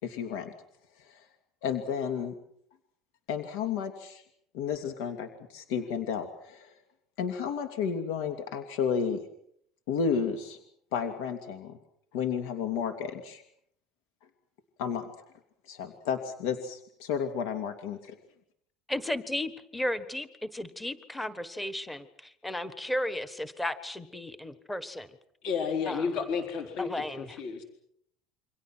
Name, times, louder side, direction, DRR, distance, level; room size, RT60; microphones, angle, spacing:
voice 1, 0.0-0.5 1.0-1.3 1.6-2.3 3.3-4.2 4.5-6.7 7.2-9.2 9.9-10.6 10.9-11.8 12.1-13.4 14.8-15.3 15.7-18.1, left 7 dB, 80° left, 6 dB, 2.7 m, -32 dB
voice 2, 18.9-25.1 25.9-26.1 26.8-27.4, left 1 dB, 5° left, 12 dB, 1.3 m, -34 dB
voice 3, 25.4-26.9 27.2-27.6, left 6 dB, 50° left, 5 dB, 3.9 m, -31 dB
28.5 x 25.0 x 6.2 m, 0.69 s
cardioid pair, 180°, 0 cm